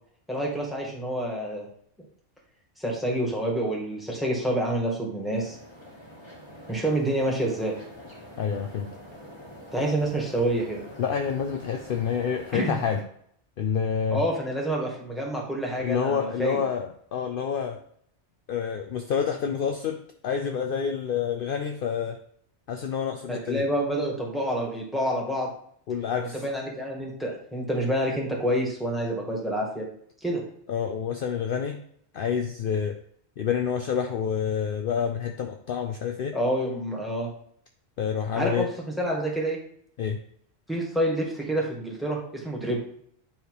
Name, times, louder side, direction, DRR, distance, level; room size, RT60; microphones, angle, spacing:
voice 1, 0.3-1.7 2.8-5.6 6.7-7.7 9.7-10.8 12.5-12.8 14.1-16.6 23.3-25.5 26.2-29.9 30.2-30.4 36.3-37.3 38.3-38.7 39.0-39.6 40.7-42.8, right 1 dB, ahead, -2 dB, 1.8 m, -28 dB
sound 1, 5.3-13.0, equal, 25° left, 1.5 m, -45 dB
voice 2, 8.4-8.9 11.0-13.0 13.6-14.2 15.8-17.8 18.5-22.2 22.7-23.6 25.9-26.4 30.7-31.8 32.1-33.0 33.4-36.4 38.0-38.7 40.0-40.2, left 7 dB, 60° left, 5 dB, 0.7 m, -28 dB
9.2 x 3.3 x 4.8 m, 0.64 s
omnidirectional pair, 1.2 m